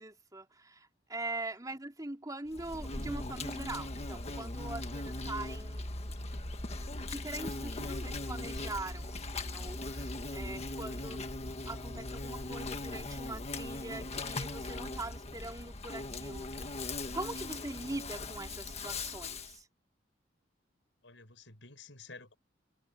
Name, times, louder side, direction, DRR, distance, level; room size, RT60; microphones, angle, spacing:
voice 1, 0.0-6.1 7.0-11.3 11.6-19.7, right 2 dB, 20° right, 3.4 m, -42 dB
Insect, 2.5-19.6, left 2 dB, 35° left, 1.6 m, -39 dB
voice 2, 21.0-22.4, left 3 dB, 85° left, 6.1 m, -52 dB
head